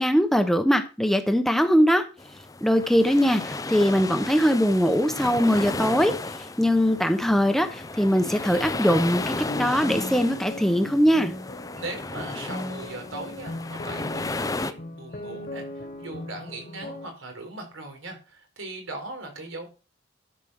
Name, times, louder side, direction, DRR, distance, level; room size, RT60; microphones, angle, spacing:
voice 1, 0.0-2.1 2.6-6.1 6.6-11.3, equal, ahead, 7 dB, 0.9 m, -21 dB
sound 1, 2.2-14.7, left 2 dB, 15° left, 0.6 m, -34 dB
sound 2, 9.3-17.1, left 1 dB, 45° left, 1.6 m, -38 dB
voice 2, 11.7-19.7, right 2 dB, 85° right, 4 dB, 4.2 m, -39 dB
12.0 x 5.2 x 6.4 m, 0.32 s
head